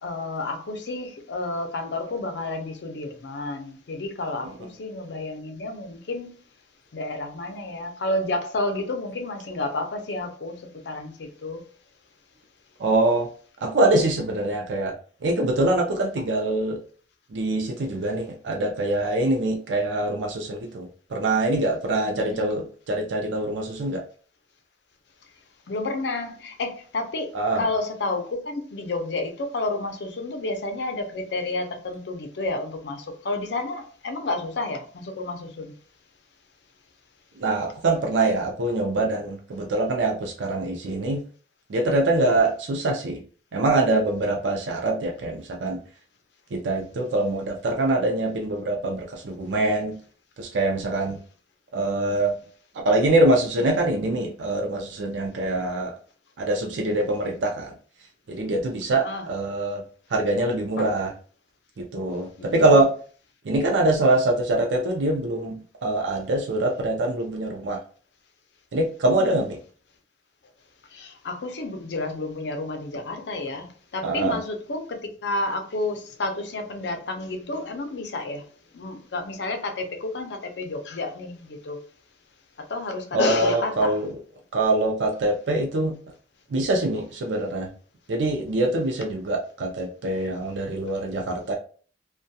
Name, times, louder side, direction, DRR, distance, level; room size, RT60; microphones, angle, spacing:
voice 1, 0.0-6.4 6.9-10.6 10.8-11.6 22.2-22.6 25.7-35.7 58.9-59.3 60.8-61.1 62.1-62.7 69.2-69.4 70.9-78.4 78.7-81.9 82.7-84.0, left 2 dB, 70° left, 0.5 m, -30 dB
voice 2, 12.8-13.3 13.6-14.9 15.2-16.8 17.3-24.0 27.3-27.6 37.4-41.2 41.7-43.2 43.5-45.8 46.5-49.9 50.4-51.2 51.7-52.3 52.7-56.0 56.4-57.7 58.3-59.8 60.1-61.1 61.8-62.9 63.4-67.8 68.7-69.6 74.0-74.4 83.1-84.1 84.5-85.9 86.5-87.7 88.1-91.6, right 2 dB, 85° right, 0.4 m, -24 dB
2.6 x 2.2 x 2.2 m
head